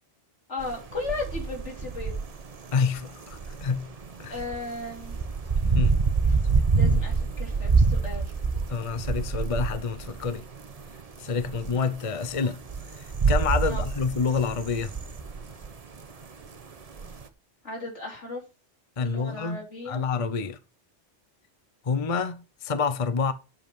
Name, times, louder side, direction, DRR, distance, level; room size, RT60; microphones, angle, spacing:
voice 1, 0.5-2.1 4.3-5.2 6.7-8.3 13.7-13.8 17.6-18.4 19.0-20.1, left 3 dB, 80° left, 3.5 m, -35 dB
sound 1, 0.6-10.9 11.4-12.0 12.3-15.7 16.4-16.5 17.0-17.2, right 4 dB, 35° right, 0.9 m, -26 dB
voice 2, 2.7-3.9 4.2-4.4 5.7-6.0 6.9-7.0 8.7-10.4 11.2-12.6 13.0-15.0 19.0-19.6 19.9-20.6 21.8-23.3, left 5 dB, 35° left, 0.8 m, -28 dB
8.0 x 7.6 x 5.3 m
omnidirectional pair, 1.2 m